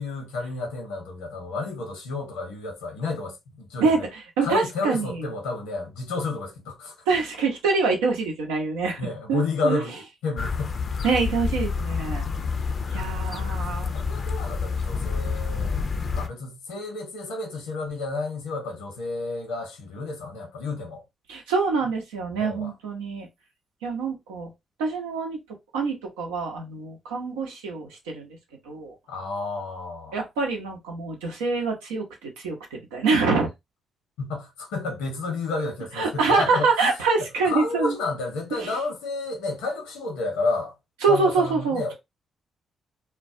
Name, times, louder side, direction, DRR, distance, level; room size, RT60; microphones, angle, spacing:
voice 1, 0.0-4.1 4.4-6.9 9.0-10.8 13.1-13.4 13.9-15.8 16.1-21.0 22.4-22.7 29.1-30.2 34.2-36.7 37.2-40.7 41.1-41.9, left 3 dB, 85° left, 0.8 m, -31 dB
voice 2, 3.8-5.2 7.1-9.0 9.3-9.8 11.0-12.3 12.9-13.9 21.3-23.3 23.8-24.5 24.8-25.4 25.7-28.3 28.7-28.9 30.1-33.5 36.0-37.9 38.6-38.8 41.0-41.9, right 4 dB, 90° right, 0.7 m, -25 dB
sound 1, 10.4-16.3, left 5 dB, 50° left, 0.4 m, -28 dB
2.2 x 2.2 x 2.6 m
hypercardioid pair, 45°, 0 cm